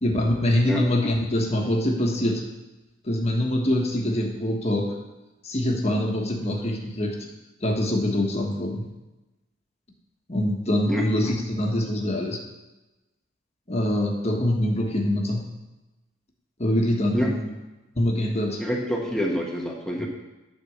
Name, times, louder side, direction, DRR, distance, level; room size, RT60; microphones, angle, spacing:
voice 1, 0.0-2.5 3.0-5.0 5.4-7.3 7.6-8.9 10.3-12.4 13.7-15.5 16.6-17.5 18.0-18.6 20.0-20.1, left 1 dB, 30° left, 1 dB, 1.3 m, -24 dB
voice 2, 18.6-20.1, equal, 5° left, -1 dB, 1.1 m, -26 dB
9.6 x 4.3 x 7.1 m, 1.1 s
head